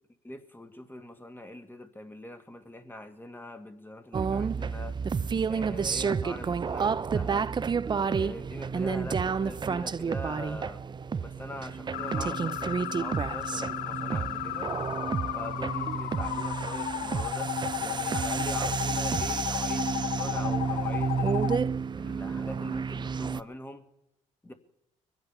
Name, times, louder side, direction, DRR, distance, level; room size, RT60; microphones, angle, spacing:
voice 1, 0.2-5.0 5.5-7.5 8.0-10.8 11.2-14.7 15.3-21.6 21.9-23.9 24.4-24.5, left 1 dB, 15° left, 7 dB, 2.0 m, -43 dB
sound 1, 4.1-23.4, right 5 dB, 30° right, 0.6 m, -30 dB
sound 2, 11.9-21.6, left 14 dB, 80° left, 0.7 m, -34 dB
22.0 x 8.1 x 6.8 m, 0.87 s
supercardioid pair, 75°, 15 cm